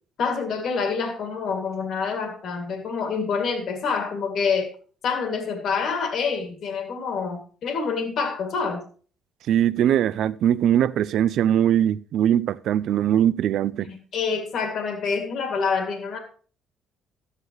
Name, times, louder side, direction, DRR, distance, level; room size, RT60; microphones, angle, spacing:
voice 1, 0.2-4.7 5.0-8.8 13.8-16.2, left 5 dB, 55° left, 2.2 m, -27 dB
voice 2, 9.5-13.9, right 10 dB, 65° right, 0.4 m, -21 dB
13.0 x 9.6 x 3.1 m
cardioid pair, 130°, 0 cm